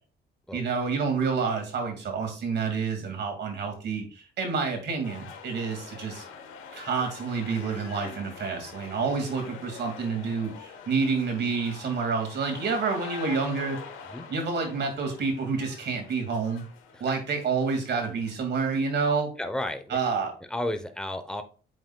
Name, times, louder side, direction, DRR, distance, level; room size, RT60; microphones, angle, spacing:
voice 1, 0.5-6.2 6.7-13.8 14.3-16.6 17.0-19.3 19.9-20.3, right 5 dB, 60° right, 4 dB, 2.2 m, -28 dB
sound 1, 5.0-18.4, left 6 dB, 90° left, 1.1 m, -45 dB
voice 2, 19.4-20.0 20.4-21.4, left 1 dB, 5° left, 8 dB, 0.9 m, -32 dB
7.7 x 5.7 x 2.3 m, 0.37 s
cardioid pair, 90°, 20 cm